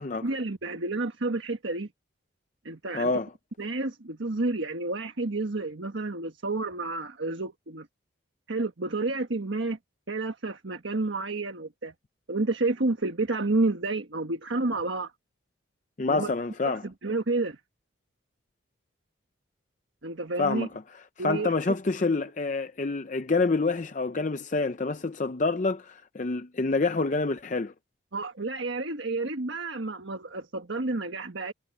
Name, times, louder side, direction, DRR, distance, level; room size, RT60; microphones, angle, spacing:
voice 1, 0.2-1.9 2.6-3.1 3.6-7.9 8.5-9.8 10.1-11.9 12.3-15.1 16.1-16.3 16.8-17.6 20.0-20.7 21.2-21.5 28.1-31.5, right 2 dB, 70° right, 1.4 m, -30 dB
voice 2, 2.9-3.3 16.0-16.8 20.4-20.7 21.2-27.7, left 3 dB, 40° left, 0.5 m, -27 dB
head